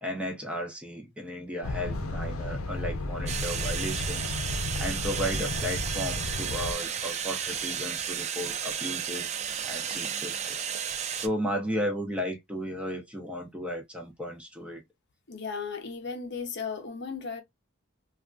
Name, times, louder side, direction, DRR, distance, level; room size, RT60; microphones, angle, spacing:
voice 1, 0.0-4.3 4.8-9.3 9.6-10.7 11.2-14.8, equal, 5° right, 0.7 m, -34 dB
sound 1, 1.6-6.7, left 2 dB, 85° left, 0.7 m, -33 dB
sound 2, 3.3-11.3, right 8 dB, 30° right, 0.3 m, -33 dB
voice 2, 15.3-17.4, left 5 dB, 50° left, 0.7 m, -35 dB
3.5 x 2.4 x 2.3 m
head